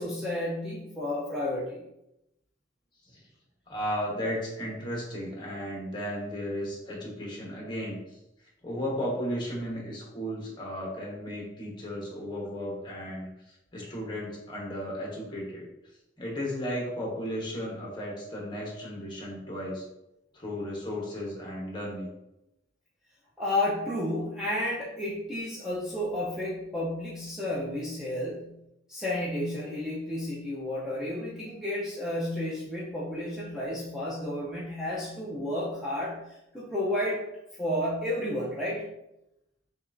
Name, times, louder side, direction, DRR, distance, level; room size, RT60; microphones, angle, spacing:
voice 1, 0.0-1.8 23.4-28.5 28.9-37.2 37.6-38.8, left 1 dB, 5° right, -7 dB, 0.5 m, -31 dB
voice 2, 3.7-8.2 8.6-13.3 13.7-15.7 16.2-19.8 20.3-22.1, equal, 25° left, -3 dB, 1.0 m, -34 dB
5.7 x 2.4 x 2.5 m, 0.87 s
head